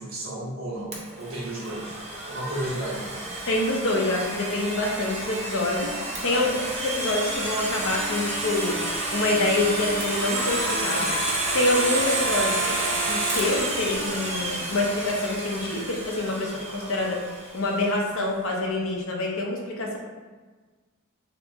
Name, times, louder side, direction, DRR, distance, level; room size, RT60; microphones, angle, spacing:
voice 1, 0.0-2.0 2.3-3.2 6.2-6.7 12.5-13.0, right 1 dB, 65° right, -7 dB, 1.2 m, -34 dB
Domestic sounds home sounds, 0.9-17.7, right 1 dB, 30° right, 0.6 m, -29 dB
voice 2, 3.5-5.9 6.2-8.8 9.1-11.1 11.5-12.6 13.1-17.2 17.5-20.0, left 2 dB, 65° left, 0 dB, 0.7 m, -26 dB
2.9 x 2.7 x 3.4 m, 1.4 s
head